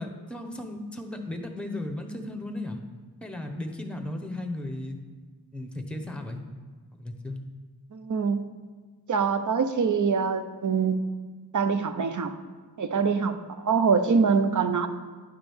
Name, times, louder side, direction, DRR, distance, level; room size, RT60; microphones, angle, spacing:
voice 1, 0.0-2.8 3.2-5.0 5.5-6.4 7.0-7.4, left 1 dB, 5° left, 4 dB, 0.8 m, -35 dB
voice 2, 7.9-8.5 9.1-11.0 11.5-12.4 12.8-14.9, right 5 dB, 50° right, 9 dB, 0.6 m, -24 dB
10.0 x 6.0 x 3.5 m, 1.4 s
wide cardioid pair, 80°, 39 cm